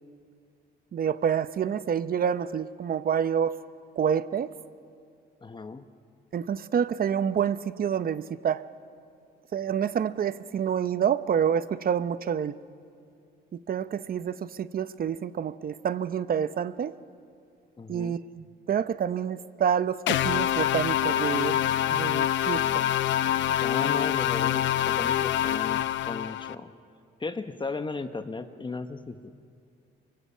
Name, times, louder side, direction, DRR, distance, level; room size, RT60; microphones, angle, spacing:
voice 1, 0.9-3.6 4.0-4.5 6.3-8.6 9.5-12.5 13.7-16.9 17.9-21.6 21.9-22.8, right 8 dB, 50° right, 14 dB, 0.7 m, -28 dB
voice 2, 5.4-5.9 17.8-18.2 23.6-26.7 27.2-29.3, left 3 dB, 25° left, 9 dB, 1.0 m, -36 dB
sound 1, 20.1-26.6, left 11 dB, 70° left, 0.6 m, -25 dB
25.5 x 23.5 x 5.6 m, 2.4 s
cardioid pair, 90°, 20 cm